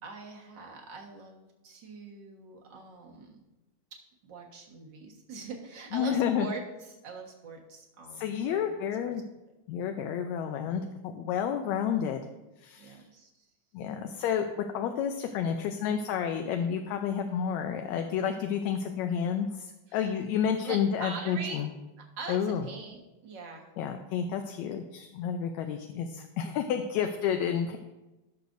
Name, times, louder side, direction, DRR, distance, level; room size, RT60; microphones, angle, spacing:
voice 1, 0.0-3.4 4.2-8.7 12.8-13.3 19.9-20.1 20.6-21.7 22.0-23.7, right 4 dB, 50° right, 0 dB, 1.6 m, -43 dB
voice 2, 5.9-6.5 8.2-9.2 9.7-12.2 12.6-13.0 13.7-21.7 22.3-22.6 23.8-27.8, left 8 dB, 80° left, 5 dB, 1.8 m, -30 dB
17.5 x 6.5 x 2.6 m, 1.0 s
omnidirectional pair, 3.4 m